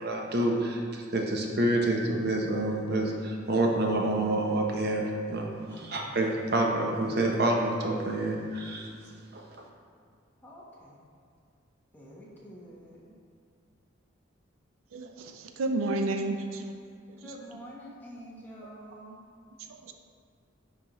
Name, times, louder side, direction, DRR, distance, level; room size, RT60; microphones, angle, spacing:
voice 1, 0.0-8.9 9.3-9.4, right 1 dB, 50° right, 0 dB, 0.7 m, -28 dB
voice 2, 10.4-11.0 11.9-13.1 17.2-19.2, equal, 10° left, -6 dB, 1.1 m, -47 dB
voice 3, 14.9-16.7 19.8-19.9, right 2 dB, 80° right, 5 dB, 0.5 m, -31 dB
10.0 x 4.1 x 3.0 m, 2.2 s
head